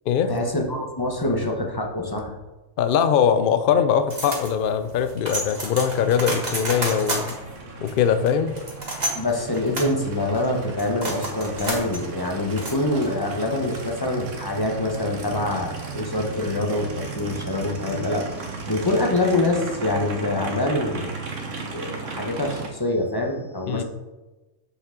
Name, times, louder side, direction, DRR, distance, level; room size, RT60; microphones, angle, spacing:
voice 1, 0.3-2.3 9.1-21.1 21.7-23.8, left 2 dB, 20° left, 1 dB, 0.9 m, -25 dB
voice 2, 2.8-7.4 7.8-8.5 23.7-23.8, left 8 dB, 60° left, 10 dB, 0.6 m, -21 dB
sound 1, 4.1-13.3, right 1 dB, 35° right, 1.6 m, -32 dB
Aircraft, 6.0-22.7, right 4 dB, 90° right, 1.4 m, -36 dB
7.1 x 6.6 x 3.8 m, 1.1 s
omnidirectional pair, 1.2 m